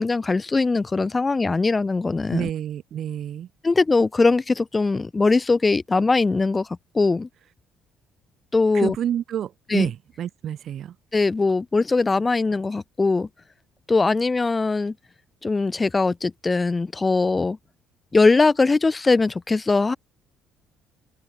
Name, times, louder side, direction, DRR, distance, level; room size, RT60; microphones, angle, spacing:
voice 1, 0.0-2.5 3.6-6.7 6.9-7.3 8.5-9.0 9.7-9.9 11.1-13.3 13.9-14.9 15.4-17.6 18.1-20.0, left 3 dB, 20° left, 0.8 m, -21 dB
voice 2, 2.3-3.5 8.7-10.9, right 10 dB, 55° right, 1.7 m, -28 dB
open air
cardioid pair, 105°, 0 cm